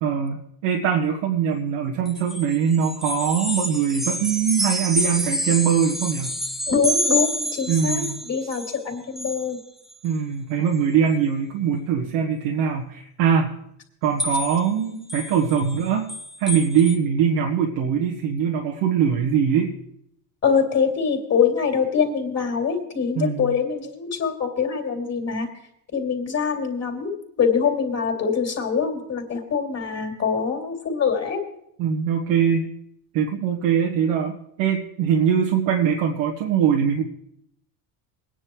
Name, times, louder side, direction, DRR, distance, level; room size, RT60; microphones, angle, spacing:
voice 1, 0.0-6.4 7.7-8.2 10.0-13.5 14.0-16.1 16.4-19.8 23.2-23.5 31.8-32.7 33.1-37.0, right 7 dB, 70° right, 1 dB, 1.7 m, -22 dB
sound 1, 2.1-8.8 9.2-9.5 9.9-10.1 10.7-10.8 14.2-14.7 15.1-17.0, equal, ahead, 0.9 m, -28 dB
voice 2, 6.7-9.6 20.4-25.5 25.9-31.4, left 6 dB, 30° left, 0 dB, 3.3 m, -24 dB
21.0 x 10.0 x 3.2 m, 0.74 s
supercardioid pair, 90°, 49 cm